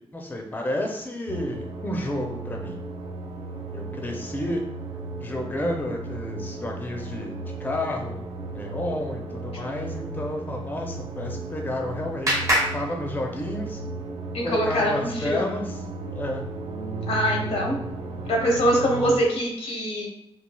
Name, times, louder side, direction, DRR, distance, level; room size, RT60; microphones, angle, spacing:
voice 1, 0.1-2.8 3.7-4.6 5.2-13.8 14.4-15.8 16.1-16.4 18.5-18.6, left 1 dB, 20° left, 1 dB, 0.4 m, -31 dB
sound 1, 1.3-19.2, right 3 dB, 75° right, 0.4 m, -35 dB
Clapping, 11.1-13.8, equal, 35° right, 0.7 m, -28 dB
voice 2, 14.3-15.6 17.1-17.8 18.3-20.1, equal, 90° left, -1 dB, 0.8 m, -24 dB
3.1 x 2.3 x 2.2 m, 0.83 s
wide cardioid pair, 90°, 10 cm